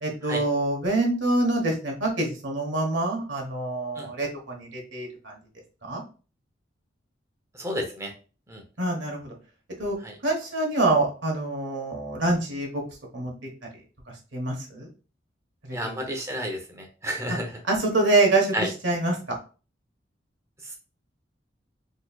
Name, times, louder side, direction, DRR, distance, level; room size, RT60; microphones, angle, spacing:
voice 1, 0.0-5.3 5.8-6.0 8.8-9.3 9.8-10.0 10.2-12.8 13.1-13.5 14.3-14.9 15.6-16.0 17.6-19.4, right 2 dB, 75° right, 0 dB, 1.1 m, -26 dB
voice 2, 7.5-8.1 8.5-8.6 10.0-10.1 15.7-17.5 18.5-18.7, equal, 15° right, 3 dB, 0.8 m, -31 dB
4.1 x 3.1 x 2.3 m, 0.35 s
head